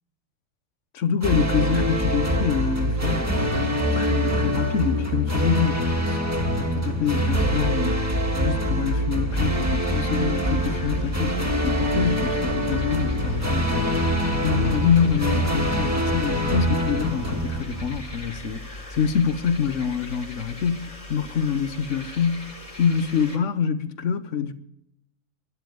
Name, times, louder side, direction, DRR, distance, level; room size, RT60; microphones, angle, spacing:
voice 1, 0.9-6.2 6.5-22.5 22.8-24.5, left 7 dB, 55° left, 1.1 m, -26 dB
sound 1, 1.2-18.3, equal, 10° right, 1.6 m, -24 dB
sound 2, 9.3-23.4, left 2 dB, 20° left, 1.7 m, -36 dB
13.0 x 10.5 x 7.8 m
omnidirectional pair, 1.7 m